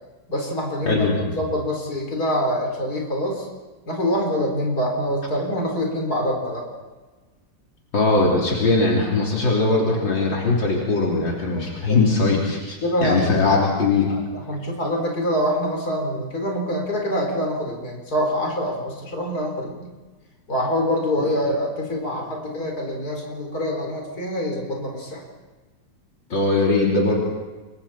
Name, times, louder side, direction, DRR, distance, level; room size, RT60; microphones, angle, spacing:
voice 1, 0.3-1.0 1.4-3.5 3.9-6.7 11.5-12.0 12.8-13.5 14.1-19.9 20.5-25.2, equal, 50° left, 0 dB, 4.8 m, -25 dB
voice 2, 0.9-1.3 7.9-14.1 21.2-21.3 26.3-27.2, left 3 dB, 75° left, -3 dB, 4.1 m, -20 dB
28.5 x 23.0 x 4.4 m, 1.3 s
omnidirectional pair, 2.1 m